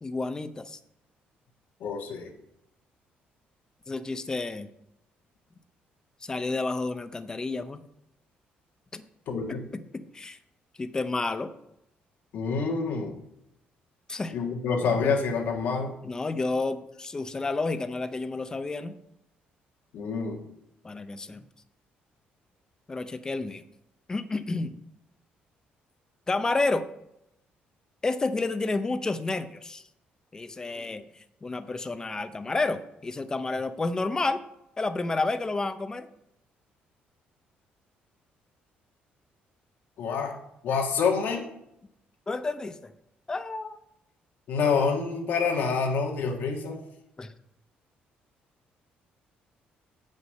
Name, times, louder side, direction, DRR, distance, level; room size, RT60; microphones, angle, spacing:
voice 1, 0.0-0.8 3.9-4.7 6.2-7.8 8.9-9.0 9.5-10.4 10.8-11.5 14.1-14.3 16.0-19.0 20.8-21.4 22.9-23.6 24.1-24.8 26.3-26.9 28.0-29.8 30.3-34.4 34.8-36.1 42.3-42.9 43.3-43.8 47.2-47.3, left 3 dB, 20° left, 12 dB, 0.6 m, -30 dB
voice 2, 1.8-2.3 9.3-9.6 12.3-13.2 14.3-16.0 19.9-20.4 40.0-40.3 40.6-41.5 44.5-46.8, left 5 dB, 70° left, 2 dB, 1.5 m, -27 dB
8.0 x 5.3 x 6.4 m, 0.83 s
cardioid pair, 130°, 3 cm